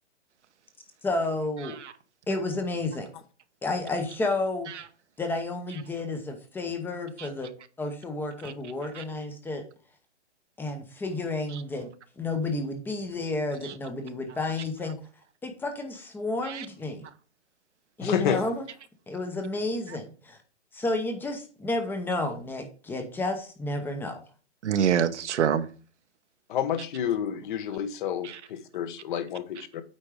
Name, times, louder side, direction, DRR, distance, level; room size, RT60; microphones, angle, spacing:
voice 1, 1.0-1.8 2.3-3.1 3.6-4.7 5.2-7.5 7.8-9.6 10.6-11.9 12.2-15.0 15.4-17.0 18.0-18.6 19.1-20.4 20.7-24.2, left 2 dB, 5° left, 0.7 m, -31 dB
voice 2, 18.0-18.4 26.5-29.8, left 9 dB, 45° left, 1.0 m, -29 dB
voice 3, 24.6-25.7 28.2-28.4, right 8 dB, 75° right, 1.0 m, -27 dB
8.7 x 4.4 x 4.8 m
hypercardioid pair, 145°, 36 cm